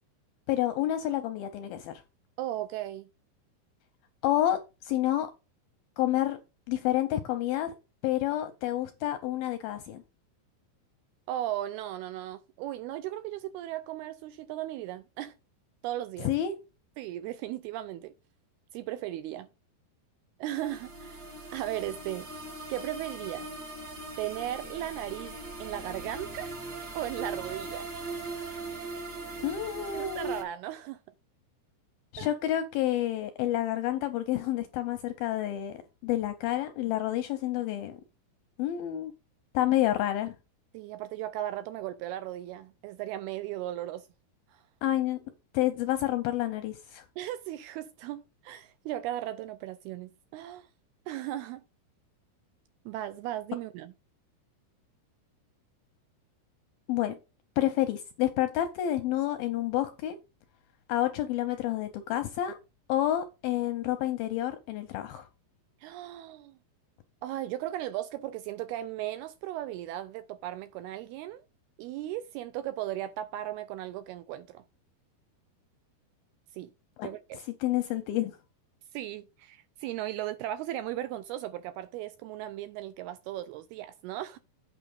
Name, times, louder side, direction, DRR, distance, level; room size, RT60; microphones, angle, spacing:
voice 1, 0.5-2.0 4.2-5.3 6.0-6.4 6.7-7.7 8.0-10.0 16.2-16.6 29.4-30.4 32.1-35.8 36.0-38.0 38.6-39.1 39.5-40.3 44.8-45.2 45.5-47.1 56.9-57.2 57.6-60.2 60.9-62.6 62.9-65.3 77.0-77.1 77.6-78.4, left 13 dB, 80° left, 2.2 m, -29 dB
voice 2, 2.4-3.1 11.3-15.3 15.8-16.3 17.0-18.1 18.7-19.5 20.4-21.2 21.5-22.3 22.7-23.5 24.2-25.3 25.6-26.5 27.0-27.9 29.9-31.0 32.2-32.3 40.7-44.1 44.5-44.6 47.2-50.7 51.1-51.6 52.9-53.9 65.8-66.6 67.2-71.4 71.8-74.6 76.5-76.7 77.0-77.4 78.9-84.4, right 13 dB, 80° right, 2.3 m, -36 dB
sound 1, 20.5-30.4, right 3 dB, 55° right, 1.1 m, -40 dB
8.7 x 5.0 x 5.3 m
omnidirectional pair, 4.9 m